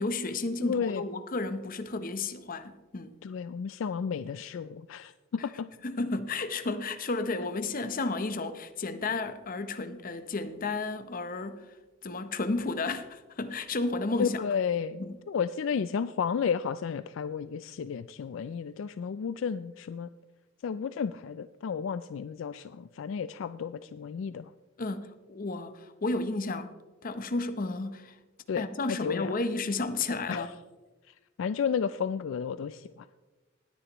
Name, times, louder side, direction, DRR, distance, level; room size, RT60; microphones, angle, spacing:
voice 1, 0.0-3.1 5.8-11.7 12.0-14.4 15.0-15.2 24.8-26.7 27.0-28.2 28.6-30.5, left 3 dB, 45° left, 0.8 m, -32 dB
voice 2, 0.6-1.0 3.2-5.1 5.4-5.7 14.2-15.0 15.3-20.1 20.6-24.5 28.5-29.3 30.3-30.5 31.4-33.1, left 6 dB, 70° left, 0.3 m, -32 dB
19.0 x 10.0 x 3.0 m
head